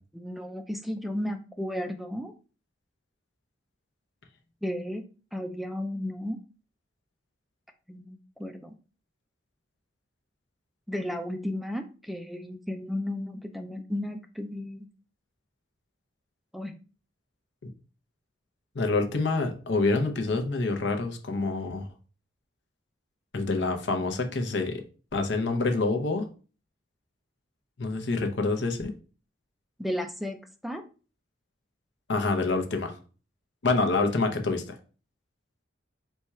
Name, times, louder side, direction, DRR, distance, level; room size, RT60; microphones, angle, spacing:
voice 1, 0.1-2.3 4.6-5.0 5.3-6.4 7.9-8.7 10.9-14.9 16.5-16.7 29.8-30.8, left 1 dB, ahead, 6 dB, 0.3 m, -34 dB
voice 2, 18.7-21.9 23.3-24.8 25.1-26.2 27.8-28.9 32.1-32.9 33.6-34.8, left 3 dB, 60° left, 4 dB, 0.7 m, -27 dB
4.3 x 2.3 x 4.2 m, 0.37 s
head